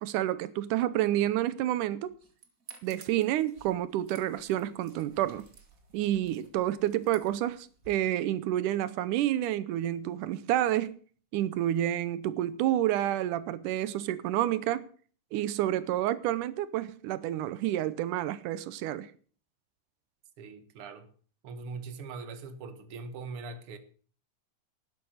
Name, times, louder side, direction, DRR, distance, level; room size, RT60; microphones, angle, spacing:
voice 1, 0.0-2.1 2.8-5.5 5.9-11.0 11.3-14.9 15.3-19.1, right 13 dB, 90° right, 2.3 m, -29 dB
sound 1, 2.0-7.9, right 5 dB, 30° right, 2.0 m, -55 dB
voice 2, 20.4-21.1 21.4-23.8, right 4 dB, 50° right, 2.3 m, -41 dB
12.0 x 11.5 x 6.4 m
omnidirectional pair, 3.5 m